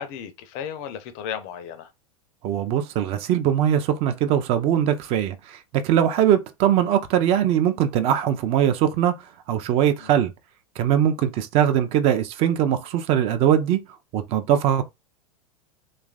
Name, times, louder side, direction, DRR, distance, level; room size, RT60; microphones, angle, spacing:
voice 1, 0.0-1.9 10.0-10.2, left 8 dB, 35° left, 0.5 m, -34 dB
voice 2, 2.4-5.6 5.8-9.1 9.5-10.3 10.8-13.8 14.1-14.8, right 10 dB, 30° right, 0.4 m, -21 dB
3.1 x 2.4 x 2.3 m
figure-of-eight pair, 90°, 19 cm